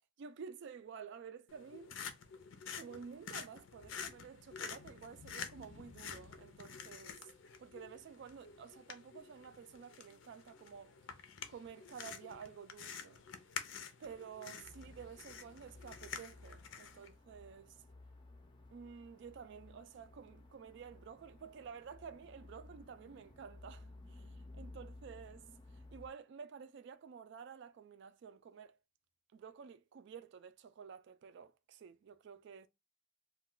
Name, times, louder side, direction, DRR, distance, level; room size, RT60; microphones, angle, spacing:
voice 1, 0.2-2.0 2.7-7.2 7.6-10.9 11.5-13.2 14.0-17.8 18.7-25.4 25.7-28.8 29.3-32.7, right 6 dB, 65° right, 0.3 m, -51 dB
sound 1, 1.5-17.1, left 6 dB, 85° left, 0.5 m, -49 dB
sound 2, 14.6-26.1, left 2 dB, 25° left, 0.4 m, -56 dB
2.3 x 2.2 x 3.7 m
head